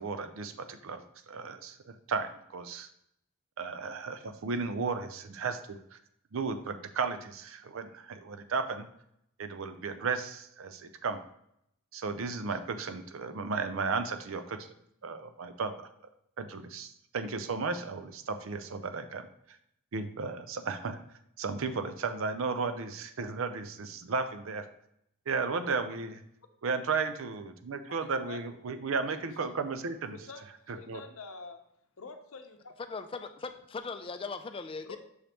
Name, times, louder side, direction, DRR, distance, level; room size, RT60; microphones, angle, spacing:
voice 1, 0.0-2.9 3.6-6.0 6.3-8.9 9.4-11.2 11.9-14.6 15.0-15.9 16.4-19.2 19.5-19.6 19.9-21.0 21.4-24.6 25.3-26.2 26.6-30.2 30.9-31.0, right 4 dB, 65° right, 10 dB, 0.5 m, -34 dB
voice 2, 27.9-28.4 29.4-29.5 30.1-31.6 32.0-32.7 34.8-35.0, left 4 dB, 70° left, 6 dB, 0.7 m, -46 dB
voice 3, 32.9-35.0, left 4 dB, 25° left, 8 dB, 0.4 m, -39 dB
6.4 x 5.1 x 2.9 m, 0.76 s
head